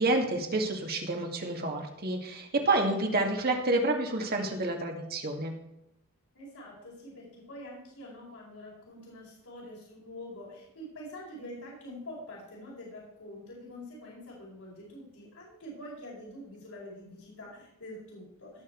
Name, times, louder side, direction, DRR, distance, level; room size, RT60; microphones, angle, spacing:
voice 1, 0.0-5.5, right 2 dB, 45° right, 2 dB, 2.2 m, -29 dB
voice 2, 6.3-18.6, left 1 dB, 80° left, -5 dB, 4.8 m, -45 dB
17.5 x 6.4 x 4.7 m, 0.82 s
head